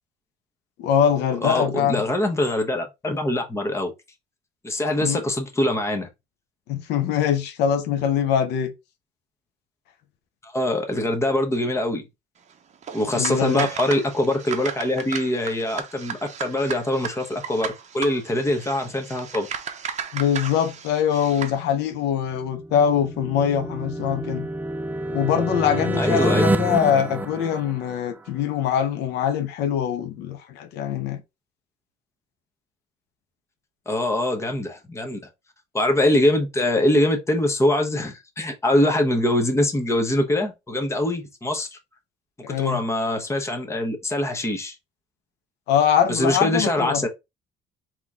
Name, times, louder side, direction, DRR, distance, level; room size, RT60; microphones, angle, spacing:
voice 1, 0.8-2.0 5.0-5.2 6.7-8.7 13.1-13.7 20.1-24.5 25.1-31.2 42.4-42.8 45.7-47.1, left 8 dB, 85° left, 0.9 m, -23 dB
voice 2, 1.4-3.9 4.6-6.1 10.4-12.0 12.9-19.5 26.0-26.4 33.9-35.2 35.7-41.8 42.5-44.7 46.1-47.1, left 1 dB, 15° left, 1.0 m, -23 dB
sound 1, 12.8-21.6, right 7 dB, 45° right, 0.7 m, -35 dB
sound 2, 22.4-28.3, right 1 dB, 10° right, 0.3 m, -27 dB
3.8 x 3.0 x 3.6 m
cardioid pair, 110°, 17 cm